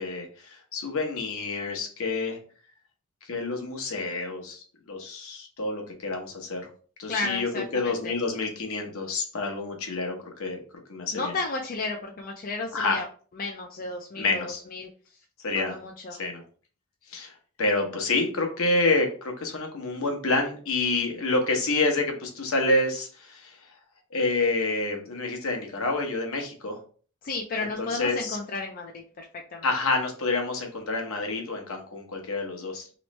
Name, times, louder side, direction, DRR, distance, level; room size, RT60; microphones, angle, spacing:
voice 1, 0.0-2.4 3.3-6.7 7.0-10.6 10.9-11.3 12.7-13.0 14.2-14.6 15.4-15.8 16.1-16.4 17.1-17.3 17.6-23.6 24.1-26.8 27.8-28.4 29.6-32.9, left 2 dB, 65° left, 3 dB, 0.9 m, -28 dB
voice 2, 7.1-8.1 11.1-13.0 13.4-14.9 15.5-16.2 27.2-29.7, left 3 dB, 40° left, 1 dB, 0.4 m, -33 dB
3.1 x 3.0 x 3.1 m, 0.41 s
head